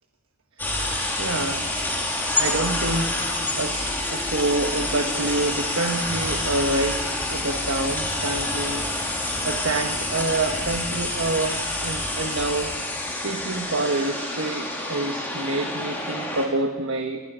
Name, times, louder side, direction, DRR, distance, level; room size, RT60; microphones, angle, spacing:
sound 1, 0.6-16.5, left 1 dB, 10° left, 3.4 m, -27 dB
voice 1, 1.2-2.0 2.4-7.0 7.3-8.9 9.2-12.7 13.0-17.2, right 2 dB, 65° right, 5 dB, 1.3 m, -27 dB
26.5 x 19.5 x 5.1 m, 1.4 s
head